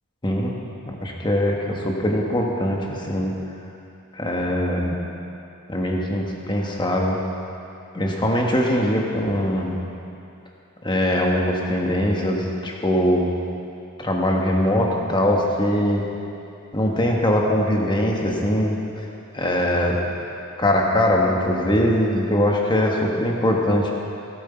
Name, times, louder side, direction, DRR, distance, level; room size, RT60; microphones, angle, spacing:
voice 1, 0.8-3.3 4.1-5.0 5.7-7.2 7.9-9.8 10.8-13.3 14.0-16.0 16.7-19.0 19.3-20.0 20.6-23.9, left 1 dB, 20° left, -1 dB, 1.4 m, -21 dB
17.5 x 7.9 x 4.5 m, 2.7 s
head